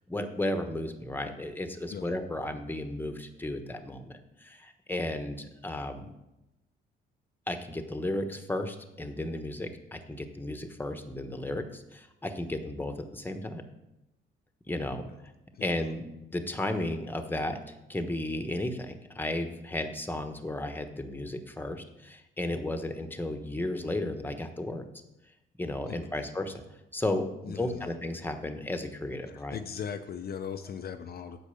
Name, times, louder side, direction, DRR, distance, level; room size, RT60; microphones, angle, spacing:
voice 1, 0.1-6.1 7.5-13.6 14.7-15.0 15.6-16.1 16.3-17.6 17.9-24.8 25.6-26.6 26.9-29.6, left 1 dB, 10° left, 6 dB, 1.2 m, -34 dB
voice 2, 25.9-26.3 27.5-27.9 29.5-31.4, left 7 dB, 50° left, 7 dB, 0.6 m, -38 dB
8.4 x 6.1 x 7.0 m, 0.93 s
cardioid pair, 90°, 20 cm